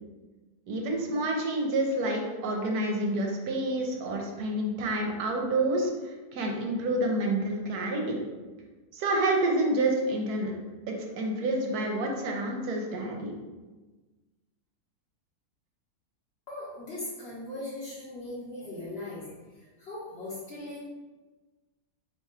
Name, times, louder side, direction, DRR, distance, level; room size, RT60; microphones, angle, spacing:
voice 1, 0.7-8.2 8.9-10.5 10.9-13.3, right 1 dB, 75° right, 1 dB, 1.1 m, -28 dB
voice 2, 16.5-20.8, left 2 dB, 50° left, -7 dB, 0.9 m, -39 dB
2.9 x 2.4 x 4.2 m, 1.2 s
omnidirectional pair, 1.7 m